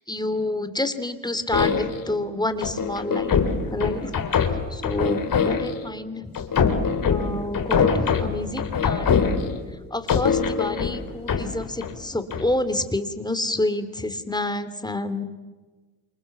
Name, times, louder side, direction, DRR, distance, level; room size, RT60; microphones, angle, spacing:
voice 1, 0.1-3.3 3.7-4.1 4.5-6.3 7.0-9.4 9.9-15.2, left 2 dB, 10° left, 10 dB, 3.0 m, -28 dB
sound 1, 1.5-2.1 2.6-5.9 6.3-9.7 10.1-11.9 12.3-12.5, left 6 dB, 50° left, 3.7 m, -23 dB
27.5 x 26.0 x 7.4 m, 1.3 s
supercardioid pair, 65°, 41 cm